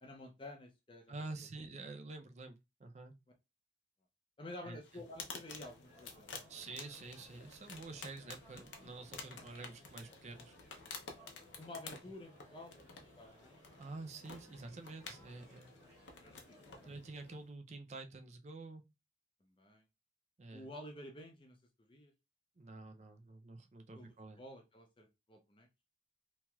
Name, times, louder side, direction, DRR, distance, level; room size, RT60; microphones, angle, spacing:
voice 1, 0.0-1.2 1.6-1.7 4.4-6.7 11.1-13.6 16.2-16.6 16.8-17.0 19.4-19.8 20.5-22.1 23.9-25.7, left 1 dB, 30° left, 0.5 m, -52 dB
voice 2, 1.1-2.5 2.8-3.1 4.6-5.0 6.5-10.6 13.8-15.7 16.8-18.8 20.4-20.7 22.6-24.4, right 3 dB, 40° right, 0.4 m, -48 dB
sound 1, 4.8-17.5, left 4 dB, 90° left, 0.7 m, -52 dB
sound 2, 5.2-16.9, equal, 20° right, 1.6 m, -65 dB
2.9 x 2.9 x 2.3 m
head